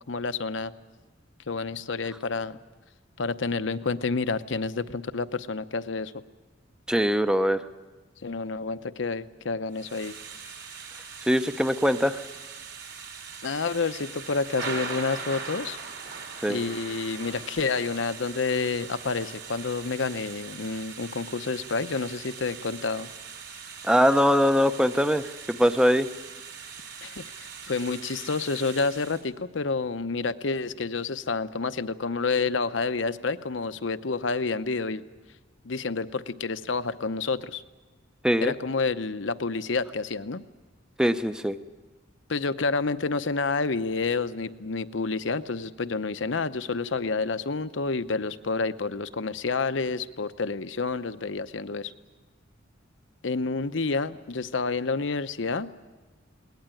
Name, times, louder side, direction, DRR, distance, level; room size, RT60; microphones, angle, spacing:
voice 1, 0.1-0.7 1.5-2.6 3.2-6.1 8.2-10.2 13.4-15.8 16.5-23.1 27.0-35.0 35.6-37.6 38.4-40.4 42.3-51.9 53.2-55.7, left 4 dB, 70° left, 12 dB, 0.8 m, -29 dB
voice 2, 6.9-7.6 11.2-12.2 16.4-16.6 23.8-26.1 38.2-38.5 41.0-41.6, equal, 5° right, 10 dB, 0.7 m, -22 dB
Thunder / Rain, 9.7-29.2, right 5 dB, 60° right, 3.6 m, -41 dB
21.0 x 19.0 x 9.1 m, 1.3 s
head